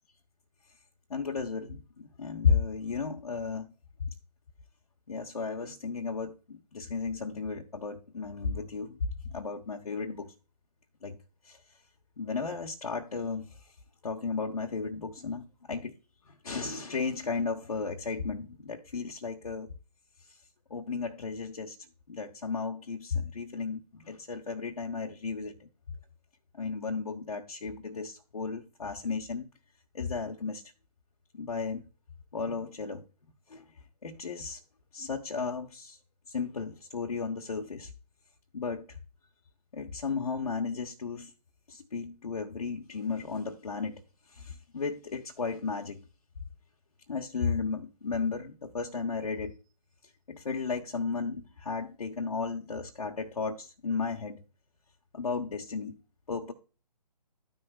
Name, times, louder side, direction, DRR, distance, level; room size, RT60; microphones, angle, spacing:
voice 1, 1.1-3.7 5.1-9.0 9.3-10.3 11.0-11.2 11.4-11.6 12.2-13.6 14.0-16.0 16.3-19.7 20.7-21.8 22.1-25.6 26.5-29.5 29.9-30.6 31.3-31.9 32.3-33.0 33.5-33.6 34.0-34.6 34.9-36.0 36.3-37.9 38.5-38.8 39.7-41.3 41.7-44.0 44.3-46.0 47.1-49.6 50.3-54.4 55.1-56.0 56.3-56.5, left 5 dB, 60° left, 1.2 m, -34 dB
13.0 x 6.5 x 2.5 m
figure-of-eight pair, 140°, 21 cm